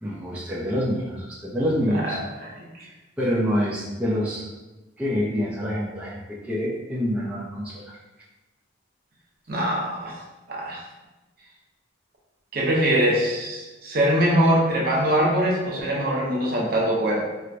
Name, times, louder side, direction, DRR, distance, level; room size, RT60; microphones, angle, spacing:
voice 1, 0.0-2.2 3.2-4.5 5.0-6.2 6.5-8.0, equal, 5° right, -7 dB, 0.4 m, -26 dB
voice 2, 1.9-2.5 2.8-2.9 9.5-10.2 10.5-10.8 12.5-17.2, equal, 50° right, -2 dB, 0.7 m, -23 dB
4.4 x 2.1 x 2.5 m, 1.1 s
head